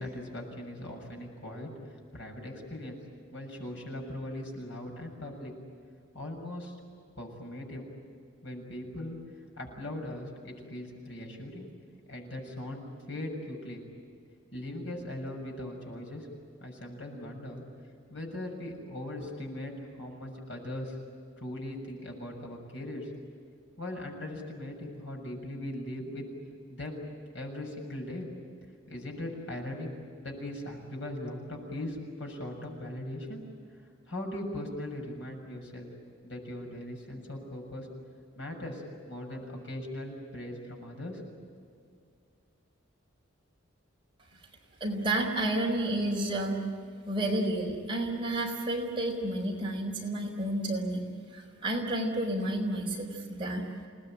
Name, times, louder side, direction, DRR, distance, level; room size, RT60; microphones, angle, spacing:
voice 1, 0.0-1.7 2.1-3.0 3.3-5.5 6.1-6.7 7.2-7.9 8.4-9.2 9.6-11.7 12.1-13.8 14.5-16.3 16.6-17.6 18.1-21.0 21.4-23.1 23.8-26.2 26.7-27.0 27.3-28.3 28.9-29.9 30.2-33.4 34.1-35.9 36.2-37.9 38.3-41.5, left 1 dB, 65° left, 1 dB, 6.8 m, -39 dB
voice 2, 44.8-46.6 47.1-51.0 51.3-53.7, right 1 dB, 25° right, -1 dB, 4.5 m, -30 dB
28.5 x 19.5 x 9.1 m, 2.3 s
head